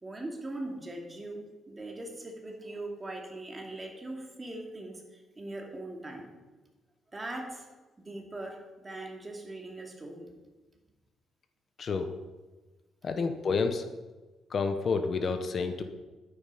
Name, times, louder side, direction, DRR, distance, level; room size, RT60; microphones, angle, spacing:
voice 1, 0.0-6.3 7.1-7.7 8.0-10.3, right 2 dB, 20° right, 1 dB, 2.6 m, -41 dB
voice 2, 11.8-12.1 13.0-13.9 14.5-15.8, left 4 dB, 50° left, 8 dB, 1.0 m, -29 dB
10.5 x 9.6 x 5.1 m, 1.2 s
cardioid pair, 90°, 0 cm